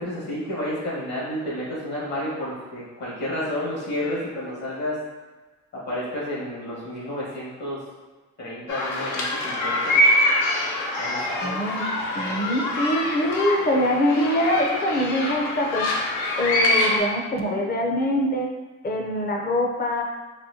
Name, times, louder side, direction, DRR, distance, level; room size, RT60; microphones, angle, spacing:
voice 1, 0.0-5.0 5.7-7.8 8.4-10.0 11.0-11.6, left 1 dB, 65° left, -7 dB, 1.5 m, -31 dB
sound 1, 8.7-17.0, left 1 dB, 85° left, 0.7 m, -24 dB
voice 2, 11.4-11.9 12.1-15.9 16.4-18.5 18.8-20.0, left 1 dB, 30° left, 1 dB, 0.6 m, -24 dB
4.2 x 2.2 x 2.7 m, 1.3 s
cardioid pair, 90°, 30 cm